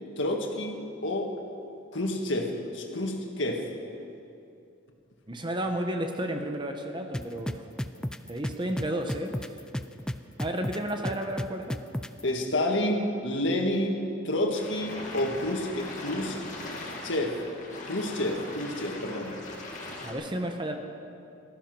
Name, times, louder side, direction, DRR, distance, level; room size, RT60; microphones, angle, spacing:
voice 1, 0.2-0.7 1.0-1.3 1.9-3.7 12.2-16.4 17.0-17.3 17.8-19.4, left 1 dB, 65° left, 2 dB, 1.8 m, -29 dB
voice 2, 5.3-7.6 8.3-9.3 10.4-11.8 20.0-20.7, right 1 dB, 25° right, 4 dB, 1.0 m, -32 dB
sound 1, 7.1-12.2, equal, 5° left, 0.3 m, -32 dB
sound 2, 14.5-20.1, left 2 dB, 40° left, 2.1 m, -40 dB
15.5 x 13.5 x 6.1 m, 2.6 s
head